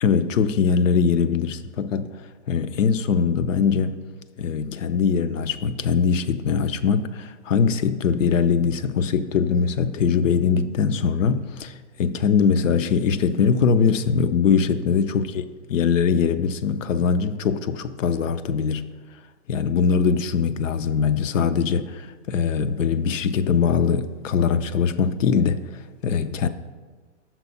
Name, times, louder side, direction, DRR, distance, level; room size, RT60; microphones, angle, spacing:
voice 1, 0.0-4.0 4.4-15.3 15.7-18.8 19.5-26.5, left 6 dB, 80° left, 0.5 m, -22 dB
6.0 x 4.1 x 5.3 m
hypercardioid pair, 150°, 38 cm